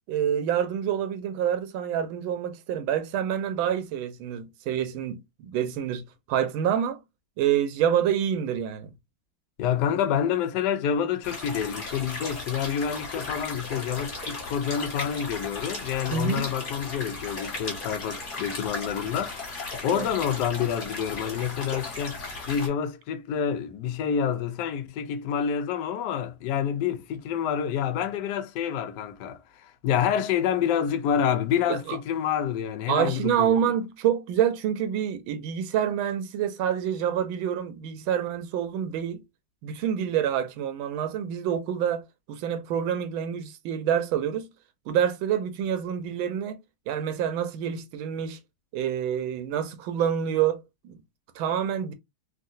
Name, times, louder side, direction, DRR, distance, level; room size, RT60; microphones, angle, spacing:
voice 1, 0.1-7.0 7.4-8.9 16.1-16.5 19.8-20.1 31.7-32.0 32.9-39.2 39.6-42.0 42.3-44.5 44.9-46.6 46.9-48.4 48.7-51.0 51.4-51.9, right 9 dB, 80° right, 1.3 m, -27 dB
voice 2, 9.6-22.2 22.5-33.7, left 8 dB, 70° left, 1.0 m, -28 dB
sound 1, 11.2-22.7, left 3 dB, 40° left, 1.7 m, -36 dB
3.7 x 2.3 x 2.5 m
omnidirectional pair, 2.3 m